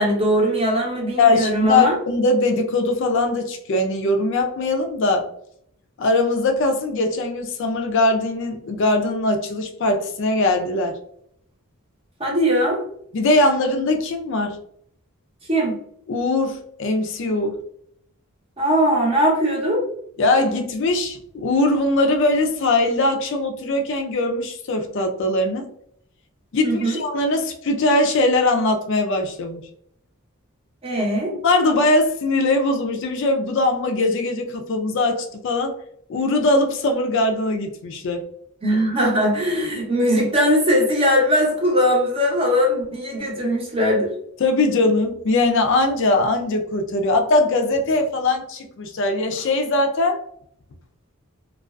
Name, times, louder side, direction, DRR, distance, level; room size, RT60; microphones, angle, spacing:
voice 1, 0.0-2.0 12.2-12.8 15.5-15.8 18.6-19.8 26.6-27.0 30.8-31.3 38.6-44.1, equal, 25° right, -2 dB, 0.7 m, -20 dB
voice 2, 1.2-5.3 6.0-11.0 13.1-14.6 16.1-17.6 20.2-25.7 26.5-29.6 31.4-35.7 36.1-38.2 44.4-50.2, left 2 dB, 55° left, 4 dB, 0.4 m, -21 dB
2.4 x 2.3 x 2.2 m, 0.68 s
head